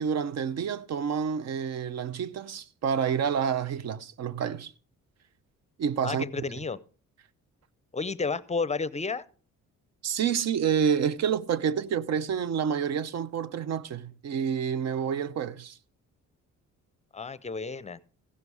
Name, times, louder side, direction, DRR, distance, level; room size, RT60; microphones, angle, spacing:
voice 1, 0.0-4.7 5.8-6.2 10.0-15.8, right 7 dB, 60° right, 0.7 m, -28 dB
voice 2, 6.0-6.8 7.9-9.2 17.1-18.0, left 4 dB, 25° left, 0.6 m, -31 dB
16.0 x 6.7 x 4.8 m
cardioid pair, 90°, 30 cm